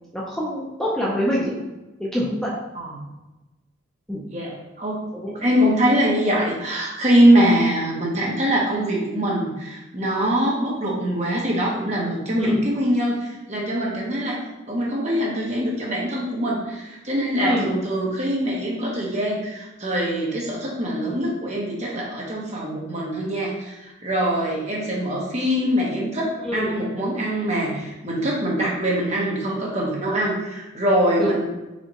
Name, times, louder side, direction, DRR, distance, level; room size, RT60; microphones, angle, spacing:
voice 1, 0.1-1.5 2.0-2.5 4.1-4.2 5.1-5.3 12.4-12.6 17.4-17.7 26.4-26.8 31.2-31.4, equal, 5° left, -6 dB, 0.6 m, -25 dB
voice 2, 4.3-5.1 5.3-31.4, equal, 35° right, -3 dB, 1.0 m, -23 dB
4.3 x 4.0 x 3.1 m, 1.0 s
head